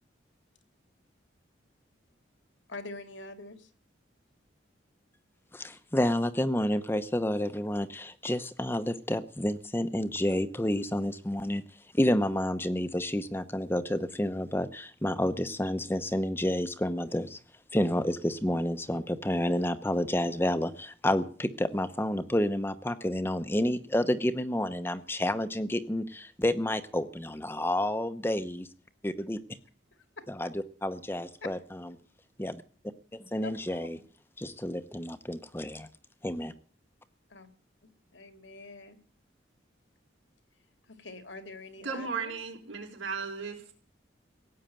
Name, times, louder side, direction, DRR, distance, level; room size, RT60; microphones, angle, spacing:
voice 1, 2.7-3.7 29.9-30.0 33.4-34.0 37.3-37.5 37.8-39.0 40.9-42.3, left 2 dB, 80° left, 8 dB, 2.4 m, -45 dB
voice 2, 5.5-11.6 11.9-17.4 17.7-28.7 29.0-29.4 30.4-30.5 30.8-31.6 32.4-32.6 33.1-34.0 34.4-35.9 36.2-36.5, left 1 dB, 10° left, 11 dB, 0.8 m, -29 dB
voice 3, 41.8-43.7, right 5 dB, 90° right, 2 dB, 5.0 m, -36 dB
17.0 x 8.9 x 8.9 m, 0.42 s
head